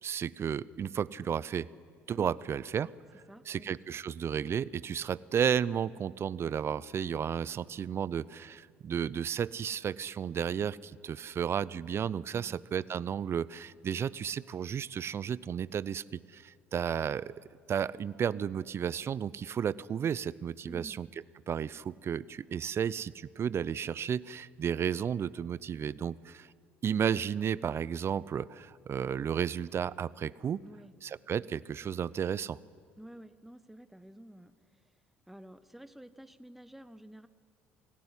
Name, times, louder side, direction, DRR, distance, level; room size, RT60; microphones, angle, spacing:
voice 1, 0.0-1.7 2.1-2.9 3.5-17.3 17.7-21.1 21.5-26.5 26.8-30.6 31.0-32.6, right 8 dB, 40° right, 20 dB, 0.6 m, -33 dB
voice 2, 3.3-3.7 12.3-12.6 20.6-21.0 30.7-30.9 33.0-34.5 35.3-37.3, right 1 dB, 5° right, 12 dB, 1.1 m, -50 dB
25.0 x 16.5 x 9.9 m, 2.1 s
hypercardioid pair, 60°, 6 cm